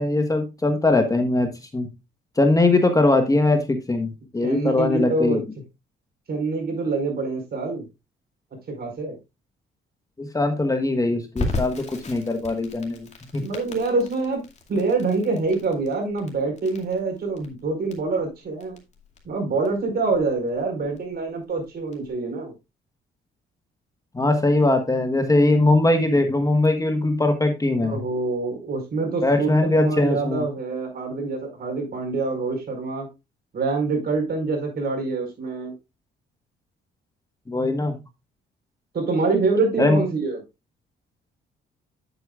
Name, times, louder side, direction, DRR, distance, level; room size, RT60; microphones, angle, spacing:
voice 1, 0.0-1.9 2.4-5.4 10.2-13.1 13.3-13.4 24.1-28.0 29.2-30.4 37.5-38.0 39.8-40.0, left 2 dB, 15° left, 5 dB, 1.3 m, -21 dB
voice 2, 4.4-5.4 6.3-7.9 8.7-9.2 13.4-14.4 14.7-18.8 19.2-22.5 27.8-33.1 33.5-35.7 38.9-40.4, right 3 dB, 50° right, 2 dB, 4.6 m, -25 dB
Crackle, 11.4-22.1, left 2 dB, 35° left, 2.4 m, -36 dB
9.0 x 8.2 x 2.4 m, 0.25 s
cardioid pair, 90°, 20 cm